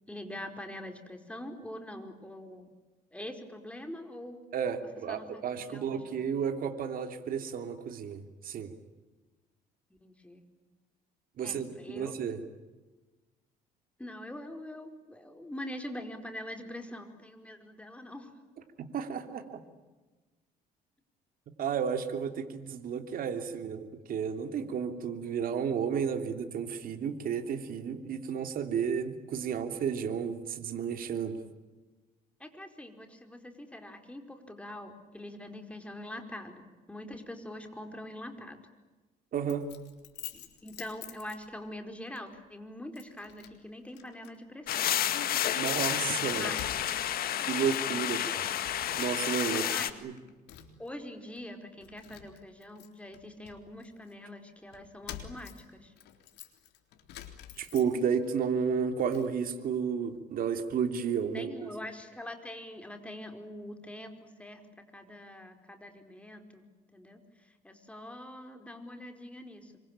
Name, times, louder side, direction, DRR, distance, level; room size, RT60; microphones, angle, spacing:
voice 1, 0.1-2.8 3.1-4.4 5.1-6.1 10.0-10.4 11.4-12.2 14.0-18.3 32.4-38.6 40.3-45.0 46.3-47.0 47.9-48.3 49.5-50.0 50.8-55.9 61.3-69.8, left 1 dB, 5° left, 6 dB, 4.7 m, -44 dB
voice 2, 4.5-8.7 11.4-12.4 18.8-19.6 21.6-31.4 39.3-39.6 45.6-46.5 47.4-48.2 48.9-49.6 50.0-50.1 57.6-61.7, right 7 dB, 55° right, 7 dB, 3.1 m, -32 dB
Keys jangling, 39.5-41.8 42.2-42.4 43.0-43.6 43.9-44.4 44.6-47.1 47.4-48.0 48.3-49.5 49.8-50.9 51.4-51.5 51.8-54.1 54.7-58.3 58.6-59.3, left 11 dB, 85° left, 3.7 m, -48 dB
sound 1, 44.7-49.9, left 11 dB, 65° left, 1.9 m, -30 dB
26.5 x 24.5 x 9.0 m, 1.2 s
cardioid pair, 110°, 17 cm